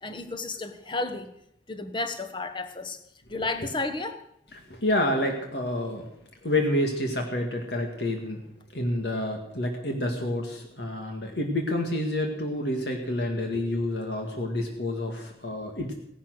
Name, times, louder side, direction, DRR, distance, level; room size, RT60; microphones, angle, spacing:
voice 1, 0.0-1.3 1.7-3.0 3.3-4.2, left 3 dB, 25° left, 8 dB, 1.2 m, -32 dB
voice 2, 4.5-6.1 6.4-8.4 8.7-15.9, left 1 dB, 75° left, 2 dB, 2.1 m, -28 dB
16.5 x 11.5 x 6.3 m, 0.77 s
head